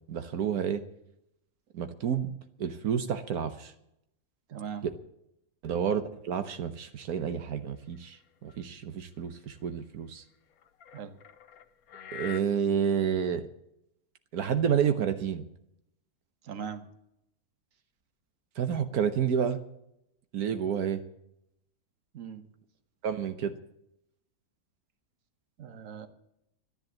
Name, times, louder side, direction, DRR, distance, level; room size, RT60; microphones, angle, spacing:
voice 1, 0.1-0.8 1.7-2.3 2.6-3.7 5.6-10.2 12.1-13.5 14.3-15.4 18.6-19.6 20.3-21.0 23.0-23.5, right 8 dB, 85° right, 8 dB, 1.4 m, -29 dB
voice 2, 4.5-4.9 10.9-11.1 16.4-16.8 22.1-22.4 25.6-26.1, right 7 dB, 60° right, 9 dB, 1.5 m, -39 dB
sound 1, 6.5-6.6 7.0-7.1 7.9-8.9 9.5-9.7 10.5-12.4, left 9 dB, 75° left, 1.3 m, -45 dB
12.5 x 10.5 x 7.2 m, 0.79 s
omnidirectional pair, 1.6 m